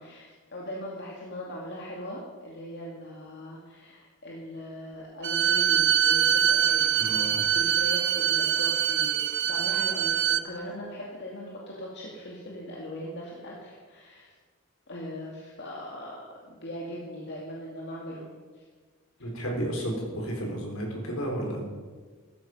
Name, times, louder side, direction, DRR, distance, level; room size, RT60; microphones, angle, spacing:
voice 1, 0.0-14.3 14.9-18.6, equal, 55° left, -3 dB, 2.4 m, -40 dB
Bowed string instrument, 5.2-10.5, right 9 dB, 55° right, 0.9 m, -24 dB
voice 2, 7.0-7.4 19.2-21.6, right 1 dB, 70° left, -1 dB, 4.7 m, -32 dB
16.0 x 14.0 x 5.6 m, 1.5 s
head